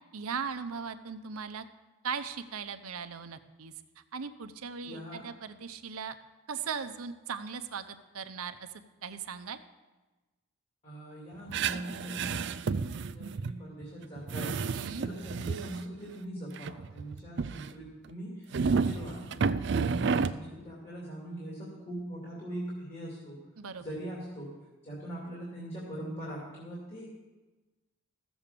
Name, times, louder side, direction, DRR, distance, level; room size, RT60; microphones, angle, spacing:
voice 1, 0.1-1.6 2.0-6.2 6.5-9.6 14.7-15.1 23.6-24.0, right 6 dB, 90° right, 9 dB, 0.8 m, -39 dB
voice 2, 4.8-5.2 10.8-14.5 15.0-23.4 23.8-24.5 24.8-27.1, right 1 dB, 30° left, -5 dB, 2.6 m, -41 dB
sound 1, 11.5-13.5 13.8-13.9 14.2-15.8 16.6-17.7 18.5-20.4, right 5 dB, 55° right, 0.4 m, -31 dB
14.5 x 7.1 x 6.7 m, 1.2 s
head